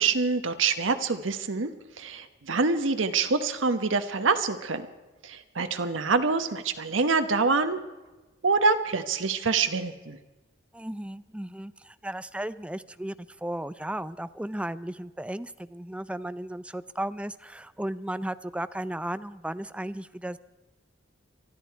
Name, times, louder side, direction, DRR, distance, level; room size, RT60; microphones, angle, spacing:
voice 1, 0.0-1.7 2.0-4.9 5.2-7.8 8.4-10.2, right 4 dB, 90° right, 8 dB, 1.0 m, -26 dB
voice 2, 10.7-13.1 13.4-20.4, right 1 dB, 5° right, 14 dB, 0.5 m, -35 dB
24.0 x 13.0 x 4.6 m, 1.2 s
head